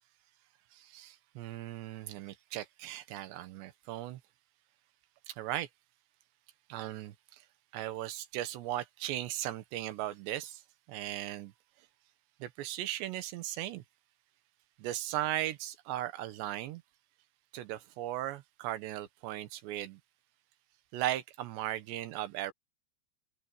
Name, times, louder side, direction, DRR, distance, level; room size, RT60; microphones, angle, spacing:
voice 1, 0.7-4.2 5.3-5.7 6.7-7.4 7.7-10.6 10.9-11.5 12.4-13.8 14.8-16.8 17.5-20.0 20.9-22.5, right 14 dB, 70° right, 3.3 m, -37 dB
open air
omnidirectional pair, 5.6 m